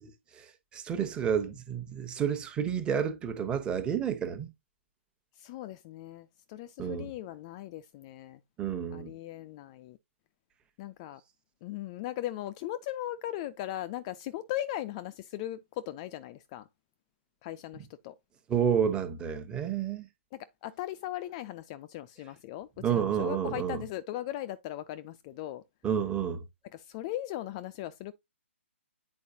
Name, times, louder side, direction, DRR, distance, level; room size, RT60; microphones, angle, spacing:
voice 1, 0.0-4.5 6.8-7.1 8.6-9.1 18.5-20.0 22.8-23.8 25.8-26.4, right 8 dB, 15° right, 1.0 m, -30 dB
voice 2, 5.4-8.4 8.9-10.0 10.8-11.2 11.6-16.7 17.4-18.1 20.3-25.6 26.7-28.1, left 13 dB, 25° left, 0.4 m, -38 dB
8.4 x 4.5 x 2.7 m
figure-of-eight pair, 140°, 7 cm